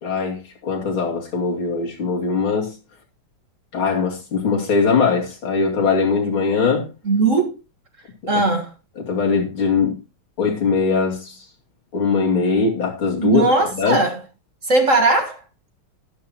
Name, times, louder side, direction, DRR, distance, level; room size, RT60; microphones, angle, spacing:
voice 1, 0.0-2.8 3.7-6.8 8.3-8.4 9.0-9.9 10.4-11.4 11.9-13.4 13.8-14.0, left 5 dB, 70° left, 3.6 m, -21 dB
voice 2, 7.1-7.6 8.3-8.7 13.2-14.2 14.6-15.4, right 3 dB, 40° right, 1.9 m, -18 dB
12.5 x 12.5 x 2.9 m
omnidirectional pair, 2.4 m